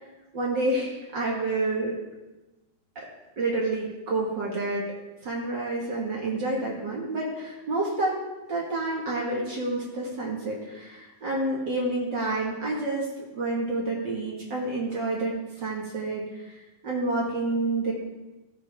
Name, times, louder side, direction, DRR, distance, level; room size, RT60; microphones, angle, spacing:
voice 1, 0.3-1.9 2.9-3.0 3.4-4.9 5.2-8.2 8.5-17.9, right 2 dB, 50° right, -3 dB, 1.4 m, -29 dB
17.0 x 7.1 x 3.5 m, 1.1 s
omnidirectional pair, 4.5 m